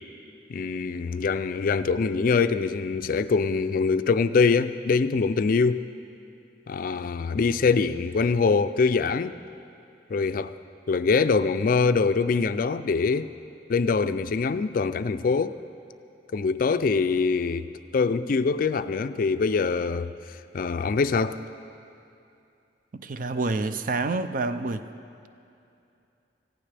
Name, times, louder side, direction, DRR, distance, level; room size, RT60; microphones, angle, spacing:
voice 1, 0.5-5.8 6.7-9.3 10.1-10.5 10.9-13.3 13.7-15.5 16.3-17.7 17.9-20.1 20.5-21.4, left 4 dB, 50° left, 12 dB, 0.4 m, -24 dB
voice 2, 22.9-24.9, right 3 dB, 50° right, 10 dB, 0.5 m, -28 dB
18.5 x 15.5 x 3.4 m, 2.7 s
head